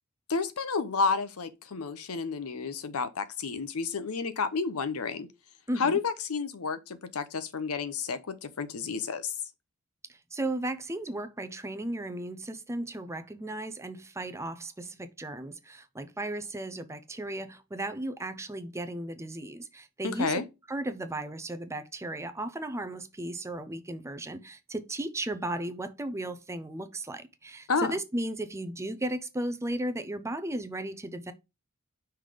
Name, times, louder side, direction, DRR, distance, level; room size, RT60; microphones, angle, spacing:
voice 1, 0.3-5.3 5.8-9.3 20.0-20.4 27.7-28.0, left 5 dB, 75° left, 0.8 m, -31 dB
voice 2, 5.7-6.0 10.3-20.4 20.7-31.3, right 1 dB, 15° right, 0.5 m, -35 dB
5.8 x 3.3 x 5.0 m
head